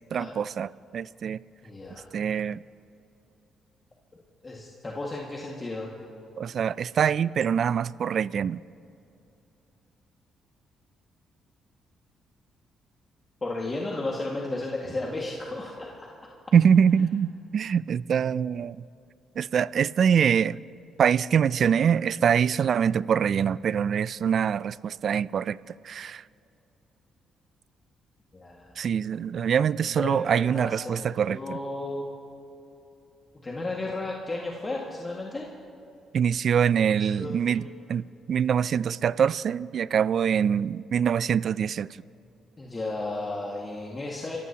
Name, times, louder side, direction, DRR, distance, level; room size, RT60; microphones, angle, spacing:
voice 1, 0.1-1.4 2.1-2.6 6.4-8.6 16.5-18.8 19.4-20.6 21.0-25.6 25.8-26.2 28.8-31.6 36.1-41.9, right 7 dB, 60° right, 19 dB, 0.3 m, -24 dB
voice 2, 1.6-2.1 4.4-5.9 13.4-16.1 28.3-28.8 29.9-32.1 33.4-35.5 37.0-37.6 42.6-44.4, left 2 dB, 25° left, -3 dB, 1.9 m, -34 dB
28.0 x 14.5 x 2.9 m, 2.8 s
cardioid pair, 90°, 0 cm